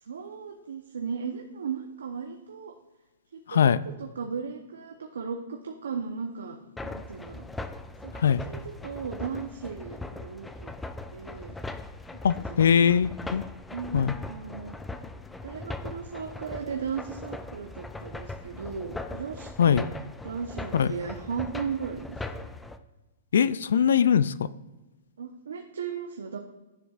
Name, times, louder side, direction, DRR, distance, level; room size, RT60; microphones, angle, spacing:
voice 1, 0.0-2.8 3.3-6.6 6.8-7.5 8.0-8.1 8.4-10.7 11.1-11.6 12.3-12.9 13.7-14.8 15.4-19.9 20.2-22.5 25.2-26.4, right 6 dB, 85° right, 3 dB, 0.8 m, -36 dB
voice 2, 3.5-3.8 8.2-8.4 12.2-13.4 13.9-14.1 19.6-19.8 20.7-20.9 23.3-24.3, left 8 dB, 75° left, 17 dB, 0.3 m, -21 dB
sound 1, 6.8-22.8, left 2 dB, 5° left, 0.4 m, -40 dB
11.0 x 10.5 x 2.4 m, 1.1 s
hypercardioid pair, 135°, 0 cm